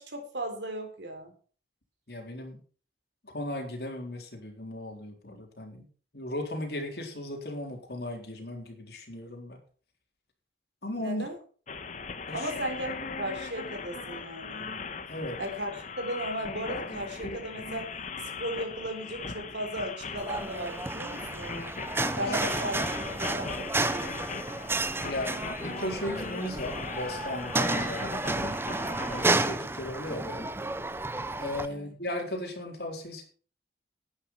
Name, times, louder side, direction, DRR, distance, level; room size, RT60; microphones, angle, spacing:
voice 1, 0.0-1.3 11.0-11.3 12.3-14.6 15.4-17.9 18.4-21.7 22.1-24.2 31.7-31.9, right 1 dB, 90° right, 5 dB, 3.9 m, -36 dB
voice 2, 2.1-2.6 3.2-5.9 6.1-9.6 10.8-11.2 12.3-12.5 15.1-15.4 22.1-22.4 24.9-28.6 29.0-30.5 31.4-33.2, left 1 dB, 65° left, 2 dB, 3.9 m, -36 dB
sound 1, 11.7-29.3, left 4 dB, 45° left, 1.3 m, -39 dB
sound 2, 20.2-31.7, right 2 dB, 15° right, 0.6 m, -31 dB
11.5 x 9.5 x 5.8 m, 0.41 s
head